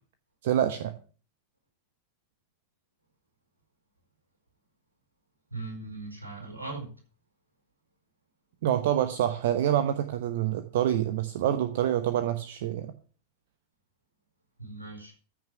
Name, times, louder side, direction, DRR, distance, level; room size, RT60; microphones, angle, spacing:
voice 1, 0.4-0.9 8.6-12.9, right 11 dB, 55° right, 10 dB, 0.9 m, -26 dB
voice 2, 5.5-6.9 14.6-15.2, right 3 dB, 85° right, 1 dB, 4.5 m, -39 dB
14.0 x 6.4 x 6.0 m, 0.39 s
figure-of-eight pair, 90°, 0 cm